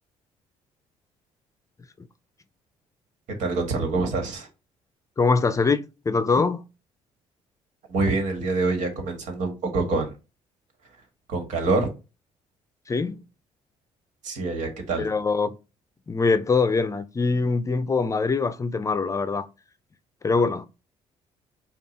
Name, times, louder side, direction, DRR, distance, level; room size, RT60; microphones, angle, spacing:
voice 1, 3.4-4.5 7.9-10.1 11.3-11.9 14.2-15.1, right 3 dB, 75° right, 1.6 m, -25 dB
voice 2, 5.2-6.6 12.9-13.2 15.0-15.6 16.1-19.5 20.2-20.7, left 4 dB, 25° left, 0.5 m, -23 dB
5.4 x 2.4 x 4.1 m
cardioid pair, 85°, 13 cm